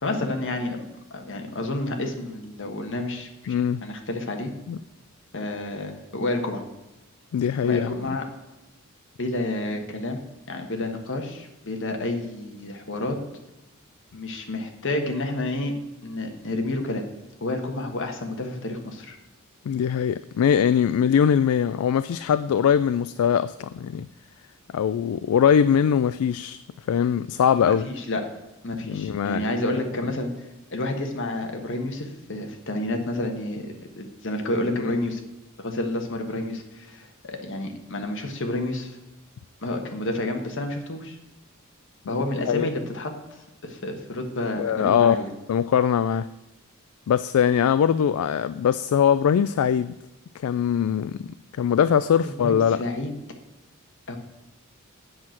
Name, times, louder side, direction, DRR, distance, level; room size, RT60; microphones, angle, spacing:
voice 1, 0.0-0.8 1.1-3.5 3.8-4.5 5.3-6.6 7.6-8.3 9.2-10.2 10.5-13.2 14.1-15.7 16.0-17.0 17.4-19.2 27.5-28.2 28.6-30.3 30.7-35.2 35.6-39.0 39.6-41.2 42.1-43.1 43.6-45.3 52.4-53.1 54.1-54.2, left 1 dB, 60° left, 4 dB, 1.4 m, -29 dB
voice 2, 3.5-3.8 4.7-4.8 7.3-8.1 19.7-24.1 24.7-27.9 28.9-29.5 42.1-42.2 42.4-42.7 44.6-45.2 45.5-46.3 47.1-49.9 50.4-51.3 51.6-52.8, left 8 dB, 75° left, 14 dB, 0.3 m, -22 dB
7.9 x 5.9 x 7.6 m, 1.0 s
head